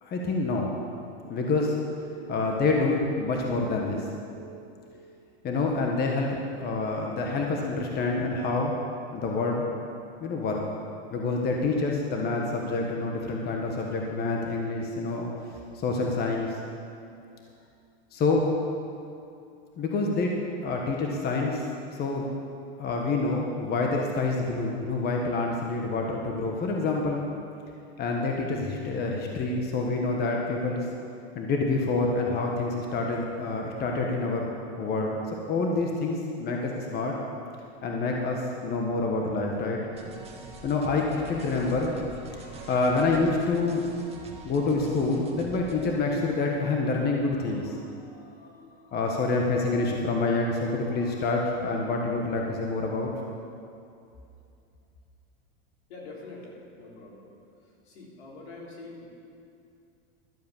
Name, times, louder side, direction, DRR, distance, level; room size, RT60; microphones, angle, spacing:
voice 1, 0.0-0.7 1.3-1.8 2.3-4.0 5.4-8.7 9.1-9.6 10.2-10.6 11.1-15.3 15.7-16.6 18.1-18.5 19.8-20.3 20.6-21.6 21.9-22.2 22.8-27.3 28.0-30.9 31.3-34.5 34.8-37.1 37.8-39.8 40.6-44.0 44.4-53.1, left 3 dB, 30° left, 0 dB, 1.3 m, -27 dB
sound 1, 1.2-5.4, right 3 dB, 35° right, 2.5 m, -46 dB
sound 2, 39.9-45.9, right 2 dB, 20° right, 1.7 m, -45 dB
voice 2, 55.9-57.3 57.9-59.1, left 3 dB, 75° left, -3 dB, 3.4 m, -44 dB
12.5 x 7.6 x 7.3 m, 2.6 s
supercardioid pair, 125°, 32 cm